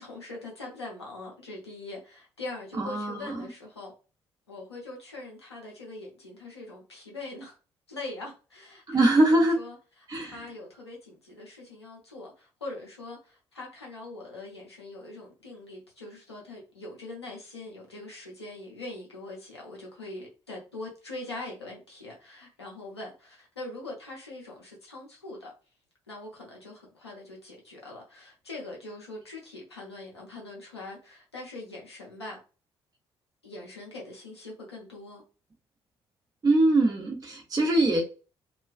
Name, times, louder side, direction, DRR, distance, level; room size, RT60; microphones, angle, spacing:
voice 1, 0.0-3.9 4.5-7.6 7.9-25.5 26.1-32.4 33.4-35.2, left 2 dB, 90° left, 0.6 m, -42 dB
voice 2, 2.8-3.5 8.9-9.6 10.1-10.4 36.4-38.0, right 2 dB, 30° right, 0.7 m, -23 dB
2.3 x 2.2 x 2.4 m
figure-of-eight pair, 45°, 13 cm